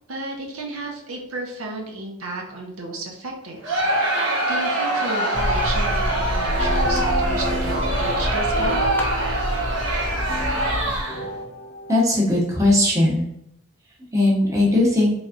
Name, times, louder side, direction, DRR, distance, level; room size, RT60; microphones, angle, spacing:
voice 1, 0.1-8.8, right 2 dB, 80° right, 0 dB, 0.8 m, -33 dB
Crowd, 3.6-11.3, right 1 dB, 65° right, 1.2 m, -24 dB
sound 1, 5.3-11.0, equal, 10° left, 0.3 m, -27 dB
sound 2, 6.6-12.0, left 1 dB, 45° left, 0.6 m, -33 dB
voice 2, 11.9-13.3 14.1-15.1, left 1 dB, 15° right, -5 dB, 1.0 m, -18 dB
4.0 x 3.4 x 2.5 m, 0.76 s
head